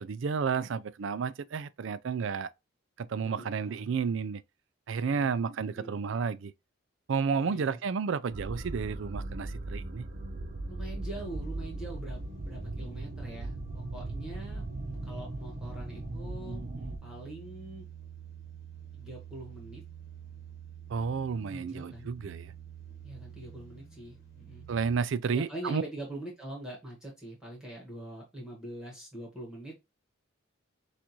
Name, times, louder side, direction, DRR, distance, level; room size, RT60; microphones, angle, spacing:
voice 1, 0.0-2.5 3.0-4.4 4.9-6.5 7.1-10.1 20.9-22.5 24.7-25.8, right 5 dB, 65° right, 0.4 m, -31 dB
voice 2, 3.2-3.9 5.0-5.4 5.6-6.0 7.3-7.8 10.7-17.9 18.9-19.8 21.3-22.1 23.0-24.7 25.3-29.7, right 1 dB, 5° right, 1.6 m, -44 dB
sound 1, 8.3-17.0, right 2 dB, 40° right, 0.8 m, -38 dB
sound 2, 11.2-24.9, right 8 dB, 50° left, 1.6 m, -49 dB
6.0 x 2.5 x 2.9 m
head